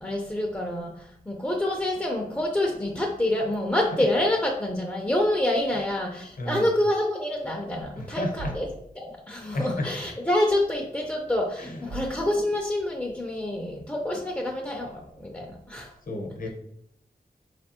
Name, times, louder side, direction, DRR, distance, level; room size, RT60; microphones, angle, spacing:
voice 1, 0.0-8.7 9.0-15.9, left 1 dB, 10° left, 0 dB, 0.6 m, -27 dB
voice 2, 8.0-8.5 9.5-9.9 11.6-12.0 16.1-16.5, left 1 dB, 55° left, 3 dB, 0.9 m, -32 dB
sound 1, 8.4-8.9 10.0-10.1 10.5-10.6 11.9-12.8, right 3 dB, 45° right, 0.4 m, -39 dB
4.5 x 3.3 x 2.9 m, 0.72 s
wide cardioid pair, 95°, 17 cm